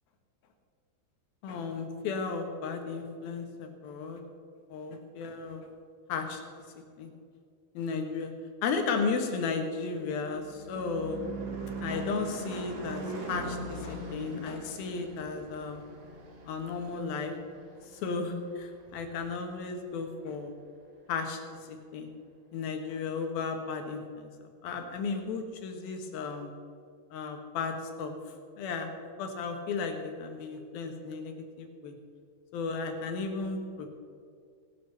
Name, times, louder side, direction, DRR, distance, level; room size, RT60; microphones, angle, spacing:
voice 1, 1.4-4.2 4.7-5.7 6.1-6.4 7.0-7.1 7.7-8.3 8.6-11.2 11.8-15.8 16.5-17.3 17.9-20.5 21.1-21.4 21.7-22.1 22.5-24.3 24.6-26.5 27.1-28.1 28.6-28.9 29.2-31.9 32.5-33.9, left 4 dB, 70° left, 4 dB, 3.0 m, -34 dB
Car passing by / Truck / Engine, 9.7-18.4, right 2 dB, 80° right, 4.0 m, -41 dB
17.5 x 7.7 x 6.6 m, 2.2 s
omnidirectional pair, 4.7 m